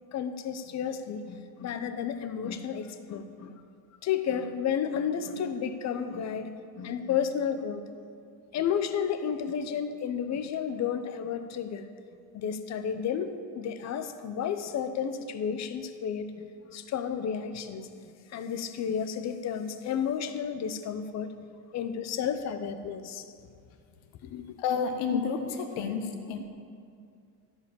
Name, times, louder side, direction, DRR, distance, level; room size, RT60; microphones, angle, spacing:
voice 1, 0.1-3.6 4.0-7.8 8.5-11.8 12.3-17.9 18.3-21.3 21.7-23.3 24.2-24.4 25.8-25.9, left 7 dB, 35° left, 9 dB, 0.9 m, -32 dB
voice 2, 24.6-26.4, left 6 dB, 80° left, 5 dB, 1.5 m, -30 dB
14.0 x 5.0 x 8.5 m, 2.3 s
supercardioid pair, 115°, 46 cm